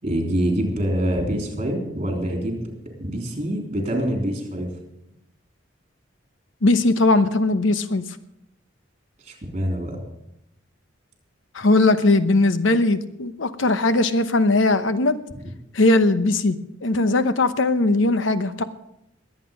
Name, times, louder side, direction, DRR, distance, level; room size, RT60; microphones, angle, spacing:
voice 1, 0.0-2.7 3.0-4.7 9.2-10.0, equal, 35° right, 2 dB, 3.6 m, -25 dB
voice 2, 6.6-8.0 11.5-15.2 15.7-18.6, left 2 dB, 80° left, 11 dB, 0.9 m, -19 dB
22.0 x 8.4 x 5.4 m, 0.82 s
head